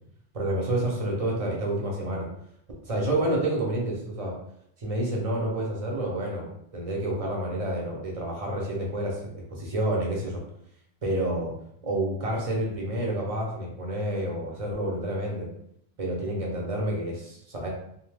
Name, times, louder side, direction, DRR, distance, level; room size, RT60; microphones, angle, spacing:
voice 1, 0.3-2.3 2.8-4.3 4.8-10.4 11.0-11.5 11.8-15.5 16.0-17.7, right 1 dB, 40° right, -2 dB, 0.7 m, -29 dB
2.7 x 2.1 x 3.3 m, 0.72 s
omnidirectional pair, 1.1 m